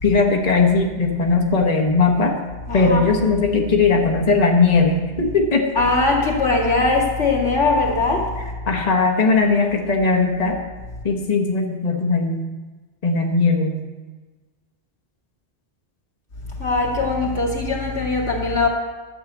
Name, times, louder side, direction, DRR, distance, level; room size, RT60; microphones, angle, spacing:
voice 1, 0.0-2.4 2.7-5.7 8.7-10.6 11.0-12.5 13.0-13.8, left 4 dB, 35° left, 1.3 m, -18 dB
voice 2, 2.7-3.1 5.7-8.5 16.6-18.7, left 3 dB, 85° left, 2.6 m, -20 dB
12.0 x 6.8 x 8.0 m
omnidirectional pair, 1.2 m